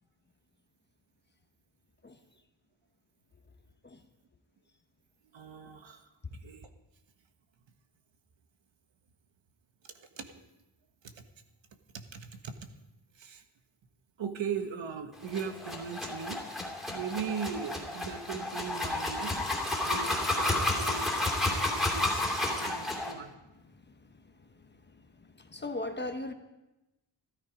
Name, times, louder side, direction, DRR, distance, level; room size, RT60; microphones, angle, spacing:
voice 1, 5.3-6.7 9.8-10.4 11.0-11.2 11.9-12.7 13.1-13.4 14.2-16.4 16.9-21.2 21.6-22.2 22.5-23.3, right 6 dB, 85° right, 1.5 m, -39 dB
sound 1, 15.2-23.1, left 1 dB, ahead, 2.5 m, -31 dB
voice 2, 21.3-21.8 25.4-26.3, left 2 dB, 25° left, 0.9 m, -38 dB
15.5 x 13.0 x 5.1 m
wide cardioid pair, 175°, 44 cm